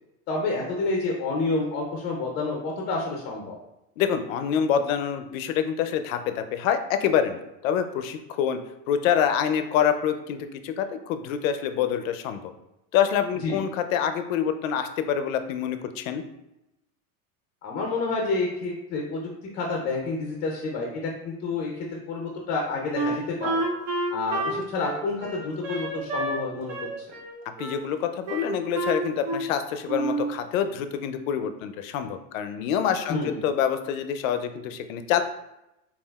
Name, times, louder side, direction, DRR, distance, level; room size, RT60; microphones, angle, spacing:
voice 1, 0.3-3.6 13.4-13.6 17.6-19.2 19.5-21.7 22.1-23.6 24.1-27.1 33.1-33.4, left 3 dB, 25° left, 0 dB, 0.4 m, -29 dB
voice 2, 4.0-8.6 8.9-12.5 12.9-16.2 27.6-35.2, left 8 dB, 80° left, 9 dB, 0.5 m, -26 dB
Wind instrument woodwind instrument, 22.9-26.4 26.7-27.8 28.3-29.5 29.9-30.3, right 2 dB, 65° right, 0.9 m, -29 dB
5.4 x 2.4 x 2.3 m, 0.90 s
supercardioid pair, 145°, 40 cm